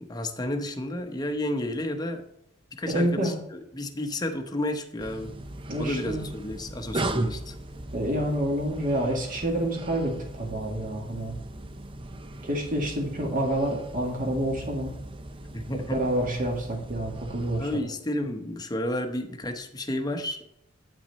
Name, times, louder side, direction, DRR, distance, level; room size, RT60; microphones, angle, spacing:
voice 1, 0.0-2.2 2.8-5.3 5.8-7.6 15.5-16.0 17.6-20.4, left 1 dB, 20° left, 5 dB, 0.9 m, -31 dB
voice 2, 2.9-3.4 5.7-6.2 7.9-11.4 12.4-14.9 15.9-17.8, right 1 dB, 45° right, 1 dB, 2.0 m, -28 dB
sound 1, 5.0-17.8, right 1 dB, 25° right, 0.5 m, -37 dB
8.7 x 6.0 x 4.2 m, 0.81 s
head